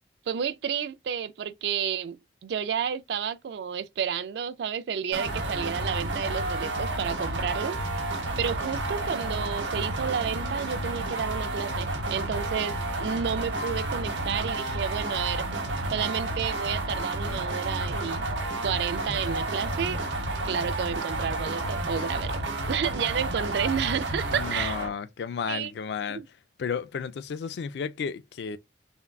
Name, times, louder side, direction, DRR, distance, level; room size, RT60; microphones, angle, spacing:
voice 1, 0.3-7.8 8.4-15.5 15.9-18.2 18.6-20.0 20.4-24.8 25.5-25.7 26.1-26.3, right 7 dB, 70° right, 0.3 m, -31 dB
sound 1, 5.1-24.9, right 2 dB, 85° right, 0.8 m, -31 dB
Meow, 8.4-9.3, right 4 dB, 25° right, 0.8 m, -45 dB
voice 2, 24.3-26.2 26.6-28.6, left 6 dB, 70° left, 0.3 m, -33 dB
3.5 x 2.2 x 2.2 m
head